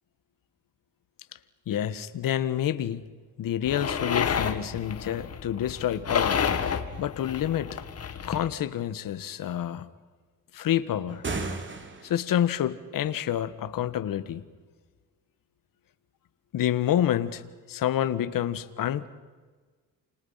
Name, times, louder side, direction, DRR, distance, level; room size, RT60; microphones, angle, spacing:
voice 1, 1.7-3.0 3.4-7.8 8.3-9.9 10.5-11.2 12.0-14.4 16.5-17.4 17.7-19.1, left 11 dB, 75° left, 13 dB, 1.6 m, -28 dB
sound 1, 3.6-8.5, left 7 dB, 45° left, 2.1 m, -30 dB
sound 2, 11.1-12.4, right 3 dB, 35° right, 3.1 m, -34 dB
30.0 x 28.5 x 5.8 m, 1.4 s
cardioid pair, 110°, 34 cm